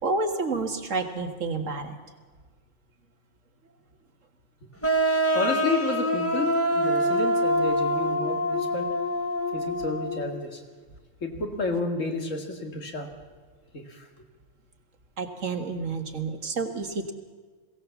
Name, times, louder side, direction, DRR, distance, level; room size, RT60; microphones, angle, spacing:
voice 1, 0.0-1.9 15.2-17.1, right 3 dB, 90° right, 5 dB, 2.1 m, -29 dB
sound 1, 4.8-10.3, equal, 10° left, 1.4 m, -25 dB
voice 2, 5.3-8.9 9.5-10.6 11.2-13.1 13.7-13.8, left 3 dB, 90° left, 4 dB, 2.5 m, -31 dB
21.5 x 16.5 x 7.2 m, 1.5 s
omnidirectional pair, 1.3 m